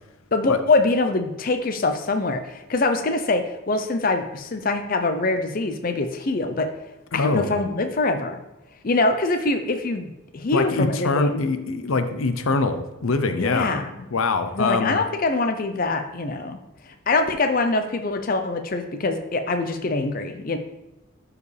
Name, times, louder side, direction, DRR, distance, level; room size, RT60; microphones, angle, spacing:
voice 1, 0.3-6.7 7.1-8.4 8.8-11.4 13.4-14.0 14.5-16.6 17.1-20.6, left 3 dB, 40° left, 6 dB, 0.6 m, -24 dB
voice 2, 7.1-7.5 10.5-13.7 14.1-15.0, left 3 dB, 80° left, 9 dB, 0.6 m, -23 dB
12.0 x 4.8 x 3.3 m, 0.99 s
head